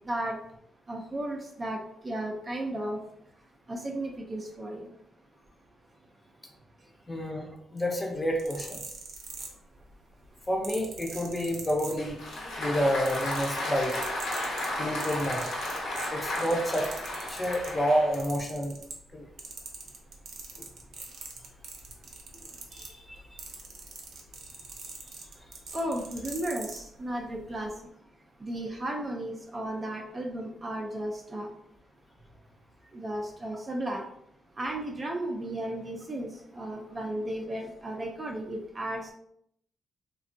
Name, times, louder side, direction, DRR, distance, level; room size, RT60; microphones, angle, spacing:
voice 1, 0.0-0.4 0.9-3.0 3.7-5.0 23.1-23.2 25.7-27.8 28.4-31.5 32.9-34.1 34.6-39.1, right 1 dB, 30° right, 1 dB, 0.4 m, -34 dB
voice 2, 7.1-8.8 10.5-12.2 12.6-14.0 14.8-15.4 16.1-18.8 19.1-19.3 22.7-23.1, equal, 20° left, 1 dB, 0.6 m, -29 dB
sound 1, 8.2-9.9 10.6-12.4 12.7-17.8 18.1-19.1 19.4-26.8 27.6-27.7, right 4 dB, 80° right, 0.6 m, -42 dB
Applause, 12.0-18.3, left 1 dB, 90° left, 0.9 m, -34 dB
3.4 x 2.2 x 2.5 m, 0.72 s
cardioid pair, 110°, 0 cm